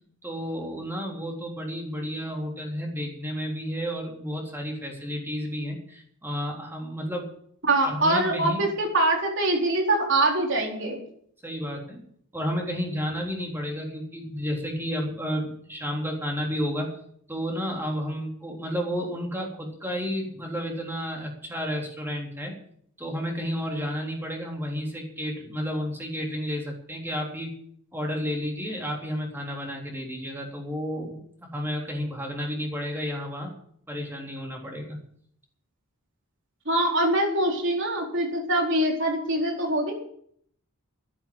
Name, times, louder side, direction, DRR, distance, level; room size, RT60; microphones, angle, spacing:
voice 1, 0.2-7.3 7.8-8.7 11.4-12.0 12.3-17.0 17.3-22.5 23.0-27.6 27.9-33.5 33.9-35.0, equal, 10° right, 0 dB, 3.6 m, -31 dB
voice 2, 7.7-11.0 36.7-39.9, right 1 dB, 55° right, 1 dB, 4.1 m, -24 dB
13.0 x 10.5 x 7.8 m, 0.64 s
head